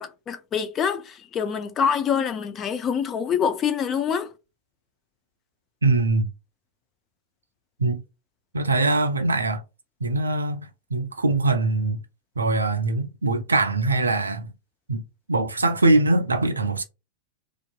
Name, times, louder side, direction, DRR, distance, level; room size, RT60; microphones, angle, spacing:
voice 1, 0.0-4.3, left 7 dB, 30° left, 0.4 m, -25 dB
voice 2, 5.8-6.3 7.8-8.0 8.5-9.6 10.0-10.6 10.9-12.0 12.4-14.5 14.9-15.0 15.3-16.8, right 2 dB, 75° right, 0.4 m, -22 dB
2.6 x 2.3 x 2.3 m
figure-of-eight pair, 90°, 0 cm